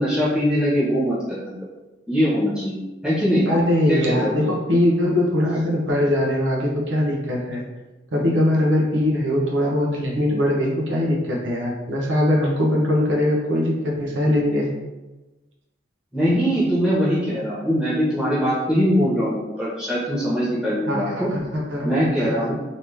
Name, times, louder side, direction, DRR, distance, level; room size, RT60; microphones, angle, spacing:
voice 1, 0.0-1.5 2.1-3.5 3.9-4.3 16.1-21.3 21.8-22.5, equal, 5° right, -10 dB, 1.1 m, -22 dB
voice 2, 3.5-7.6 8.1-14.7 20.9-21.9 22.2-22.5, left 1 dB, 85° right, -2 dB, 0.8 m, -21 dB
3.0 x 2.7 x 3.4 m, 1.1 s
head